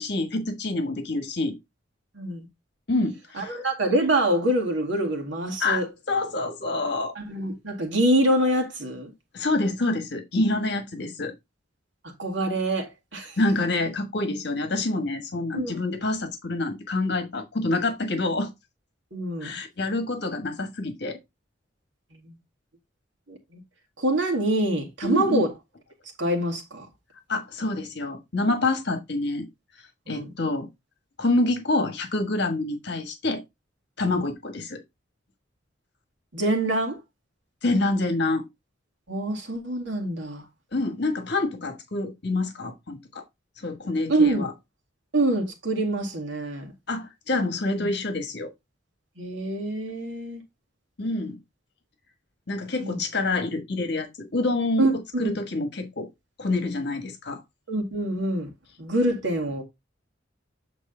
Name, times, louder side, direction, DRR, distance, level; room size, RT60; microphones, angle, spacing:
voice 1, 0.0-1.5 2.9-3.6 5.6-7.1 9.3-11.3 13.4-18.5 19.4-21.2 25.0-25.4 27.3-29.5 30.1-30.7 31.2-33.4 34.0-34.8 37.6-38.5 40.7-43.2 43.6-44.5 46.9-48.5 51.0-51.4 52.5-56.1 56.4-57.4, left 2 dB, 65° left, 1.4 m, -27 dB
voice 2, 2.2-2.5 3.4-5.9 7.2-9.1 12.2-13.3 15.5-15.7 19.1-19.5 22.1-22.3 23.3-23.6 24.0-25.5 26.2-26.9 30.1-30.3 34.0-34.2 36.3-37.0 39.1-40.4 44.1-44.4 45.1-46.7 47.7-47.9 49.2-50.4 52.8-53.0 54.8-55.4 57.7-58.5 58.8-59.6, right 1 dB, 80° right, 2.2 m, -25 dB
8.4 x 3.9 x 3.8 m
head